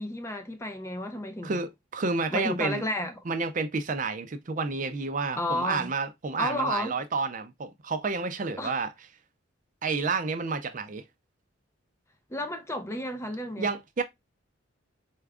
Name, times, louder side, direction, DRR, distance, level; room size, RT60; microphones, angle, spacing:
voice 1, 0.0-1.6 2.3-3.1 5.3-5.9 6.4-7.0 8.6-8.8 12.3-13.7, left 1 dB, 15° left, 0.5 m, -32 dB
voice 2, 1.4-2.8 3.3-8.9 9.8-11.0 13.6-14.0, right 4 dB, 40° right, 0.5 m, -30 dB
4.5 x 2.4 x 3.3 m
head